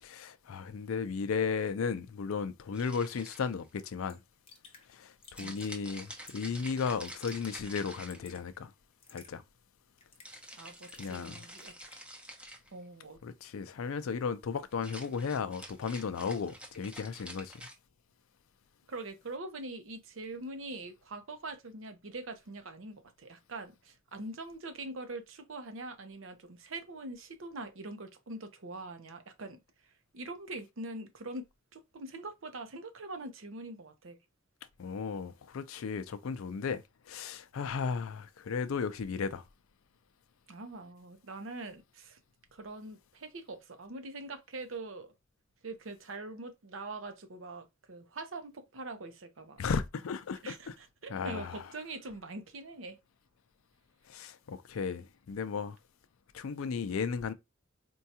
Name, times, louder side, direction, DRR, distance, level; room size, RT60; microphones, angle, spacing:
voice 1, 0.0-4.2 4.9-8.7 9.1-9.4 11.0-11.4 13.2-17.5 34.8-39.4 49.6-50.7 51.1-51.6 54.1-55.8 56.3-57.3, left 5 dB, 85° left, 0.4 m, -35 dB
sound 1, 2.7-3.7 5.3-8.6 10.2-12.7 14.7-17.7, right 1 dB, 5° right, 0.7 m, -48 dB
Raindrop / Drip, 3.7-3.8 4.1-4.2 4.5-4.9 5.2-5.8 6.3-6.6 7.0-7.6 7.8-8.4 9.0-9.3 10.0-10.4 10.8-11.3 11.6-12.0, left 4 dB, 30° left, 0.9 m, -55 dB
voice 2, 10.6-11.7 12.7-13.2 18.9-29.6 30.1-31.5 31.7-34.2 40.5-42.2 42.5-45.1 45.6-49.6 50.4-53.0, right 2 dB, 70° right, 0.7 m, -43 dB
4.5 x 2.3 x 2.7 m
head